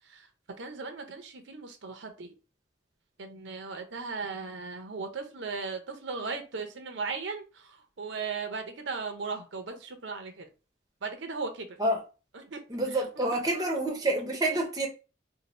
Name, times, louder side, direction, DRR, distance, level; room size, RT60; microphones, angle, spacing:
voice 1, 0.6-2.3 3.2-10.5 11.0-11.7 12.3-12.6 13.2-13.3, right 4 dB, 80° right, 0.7 m, -37 dB
voice 2, 12.7-14.9, right 1 dB, 20° right, 0.6 m, -28 dB
2.7 x 2.5 x 4.1 m
head